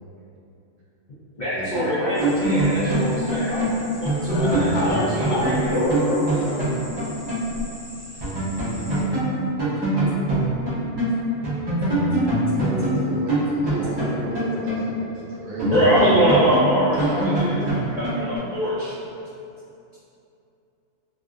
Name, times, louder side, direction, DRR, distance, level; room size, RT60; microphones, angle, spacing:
voice 1, 1.4-3.7 4.0-5.8 12.1-12.6 12.9-13.0 13.3-13.4 14.0-14.3 15.1-15.2 15.6-18.9, equal, 70° left, -11 dB, 0.4 m, -24 dB
sound 1, 1.7-7.5 7.8-7.9 8.2-11.1 11.4-15.2 15.6-18.4, right 1 dB, 35° right, 0.4 m, -24 dB
sound 2, 2.1-9.0, equal, 5° left, 0.8 m, -41 dB
voice 2, 4.3-6.8, left 1 dB, 90° left, -5 dB, 1.1 m, -26 dB
voice 3, 12.6-16.0 16.9-17.7, right 2 dB, 70° right, -6 dB, 1.0 m, -34 dB
3.2 x 2.5 x 2.4 m, 2.7 s
omnidirectional pair, 1.6 m